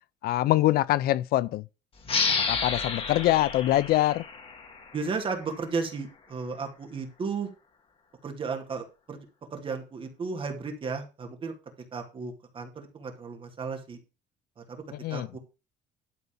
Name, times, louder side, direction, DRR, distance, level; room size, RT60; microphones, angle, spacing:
voice 1, 0.2-1.6 2.5-4.2 15.0-15.3, left 15 dB, 60° left, 0.4 m, -24 dB
sound 1, 2.0-5.3, left 5 dB, 30° left, 2.0 m, -30 dB
voice 2, 4.9-7.5 8.2-11.5 11.9-14.0 14.6-14.8 15.1-15.4, right 4 dB, 30° right, 2.3 m, -34 dB
12.0 x 4.1 x 6.9 m
cardioid pair, 160°, 18 cm